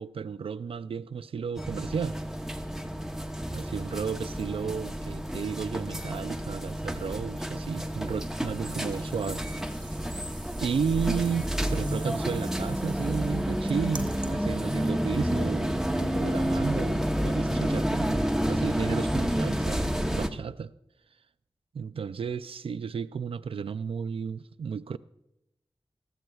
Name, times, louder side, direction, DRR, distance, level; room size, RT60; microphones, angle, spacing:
voice 1, 0.0-2.2 3.5-9.4 9.7-10.0 10.6-20.7 21.7-25.0, right 6 dB, 75° right, 0.4 m, -33 dB
sound 1, 1.6-20.3, equal, 5° right, 0.9 m, -30 dB
sound 2, 8.1-14.3, right 3 dB, 50° right, 1.4 m, -48 dB
20.0 x 14.5 x 2.3 m
wide cardioid pair, 85°, 10 cm